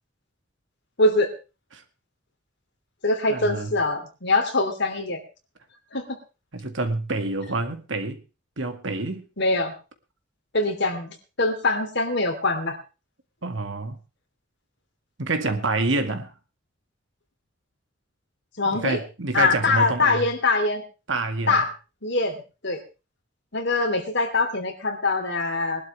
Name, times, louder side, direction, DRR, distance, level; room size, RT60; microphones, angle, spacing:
voice 1, 1.0-1.3 3.0-5.2 5.9-6.2 9.4-9.7 10.5-12.8 18.6-19.0 19.3-20.8 21.5-21.7 22.0-22.8 23.5-25.9, left 3 dB, 55° left, 3.1 m, -23 dB
voice 2, 3.3-3.7 6.5-8.2 8.6-9.2 13.4-14.0 15.2-16.3 18.7-20.3 21.1-21.6, right 3 dB, 65° right, 1.9 m, -27 dB
21.5 x 12.0 x 3.3 m
head